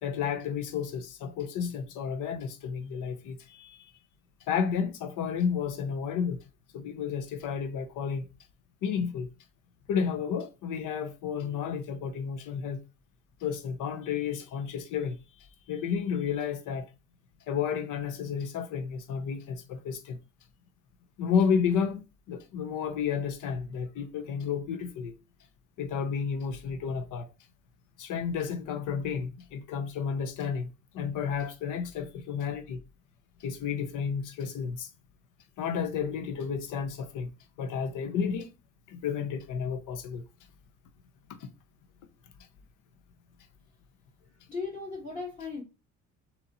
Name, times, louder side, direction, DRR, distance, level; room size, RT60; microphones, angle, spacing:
voice 1, 0.0-3.9 4.5-6.4 6.7-8.3 8.8-9.3 9.9-12.8 13.4-15.2 15.7-16.9 17.5-20.2 21.2-25.1 25.8-27.3 28.0-30.7 30.9-32.8 33.4-34.9 35.6-37.3 37.6-38.5 38.9-40.2 41.4-41.5, left 7 dB, 90° left, 0.7 m, -31 dB
voice 2, 44.2-45.6, left 4 dB, 30° left, 2.1 m, -37 dB
3.9 x 2.9 x 4.0 m
cardioid pair, 90°, 30 cm